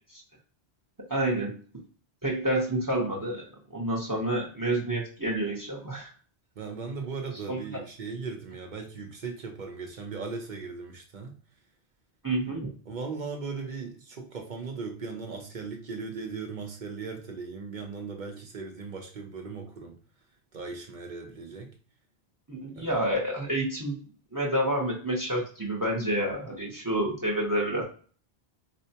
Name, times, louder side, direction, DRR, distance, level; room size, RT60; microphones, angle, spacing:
voice 1, 1.1-1.6 2.2-3.4 3.7-6.1 7.5-7.6 12.2-12.7 22.5-24.0 24.3-27.8, right 1 dB, 20° right, -1 dB, 0.7 m, -28 dB
voice 2, 6.6-11.3 12.9-19.9 20.5-21.7 22.8-23.0, right 4 dB, 50° right, 2 dB, 0.7 m, -38 dB
4.3 x 2.1 x 2.7 m, 0.41 s
omnidirectional pair, 1.1 m